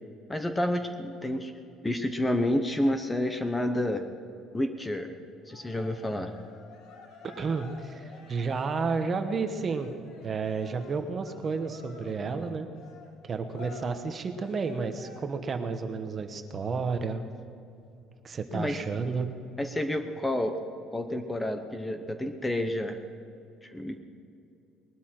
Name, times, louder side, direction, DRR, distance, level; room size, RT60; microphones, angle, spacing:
voice 1, 0.3-1.5 1.8-4.1 4.5-5.1 5.5-6.3 18.5-18.8 19.6-20.6 20.9-23.0 23.6-24.0, left 1 dB, 10° left, 7 dB, 0.8 m, -29 dB
Cheering, 5.5-15.5, left 4 dB, 75° left, 1.9 m, -51 dB
voice 2, 7.2-9.9 10.2-12.7 13.2-17.2 18.2-19.3, right 4 dB, 30° right, 8 dB, 1.0 m, -31 dB
20.5 x 12.5 x 4.4 m, 2.6 s
cardioid pair, 155°, 0 cm